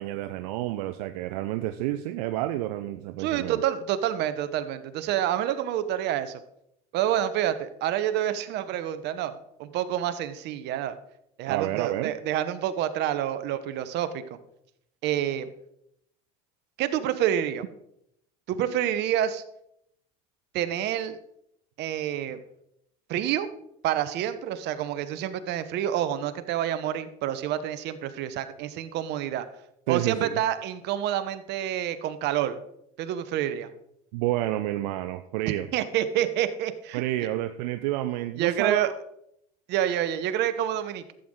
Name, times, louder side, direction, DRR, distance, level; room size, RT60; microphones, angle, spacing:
voice 1, 0.0-3.6 11.5-12.1 29.9-30.4 34.1-35.7 36.9-38.9, right 15 dB, 80° right, 9 dB, 0.6 m, -29 dB
voice 2, 3.2-6.4 6.9-9.3 9.6-11.0 11.4-14.4 15.0-15.5 16.8-17.6 18.5-19.4 20.5-21.2 21.8-22.4 23.1-23.5 23.8-29.5 29.9-32.6 33.0-33.7 35.7-37.0 38.4-38.9 39.7-41.1, right 11 dB, 60° right, 12 dB, 1.0 m, -28 dB
12.5 x 8.0 x 3.8 m, 0.77 s
supercardioid pair, 90°, 19 cm